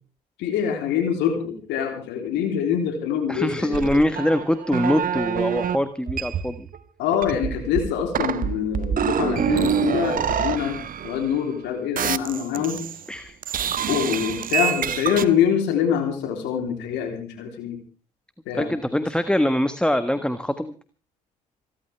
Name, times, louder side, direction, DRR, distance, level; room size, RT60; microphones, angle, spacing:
voice 1, 0.4-3.8 7.0-10.8 11.0-12.8 13.9-17.8 18.5-18.7, left 8 dB, 70° left, 4 dB, 3.5 m, -24 dB
voice 2, 3.3-6.7 13.1-13.4 18.5-20.7, left 1 dB, 5° left, 11 dB, 1.4 m, -23 dB
sound 1, 3.7-5.8 6.1-6.8 7.1-11.6 12.0-13.1 13.4-15.2, right 8 dB, 50° right, 1.2 m, -26 dB
27.0 x 12.5 x 3.5 m, 0.38 s
hypercardioid pair, 55°, 19 cm